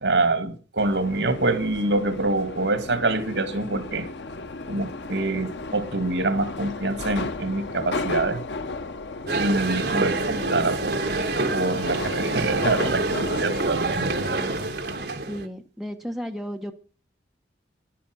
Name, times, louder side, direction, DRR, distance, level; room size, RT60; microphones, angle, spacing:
voice 1, 0.0-4.1 4.7-8.4 9.4-11.0 11.5-14.3, right 2 dB, 75° right, 9 dB, 2.3 m, -25 dB
Subway metro underground, 0.8-15.1, left 3 dB, 70° left, 0.7 m, -34 dB
sound 1, 9.3-15.5, right 3 dB, 55° right, 1.5 m, -27 dB
voice 2, 15.3-16.7, equal, ahead, 3 dB, 0.9 m, -33 dB
11.5 x 10.0 x 6.7 m, 0.38 s
head